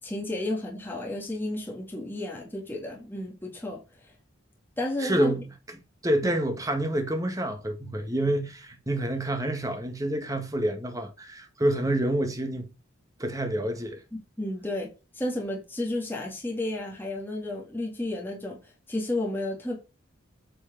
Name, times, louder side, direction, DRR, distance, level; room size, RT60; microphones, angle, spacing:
voice 1, 0.0-3.8 4.8-5.3 6.2-6.4 14.1-14.9 15.1-18.6 18.9-19.8, left 1 dB, 10° left, 2.0 m, -32 dB
voice 2, 5.0-5.5 6.0-12.7 13.2-14.0, right 1 dB, 15° right, 1.6 m, -28 dB
8.6 x 4.7 x 5.9 m
head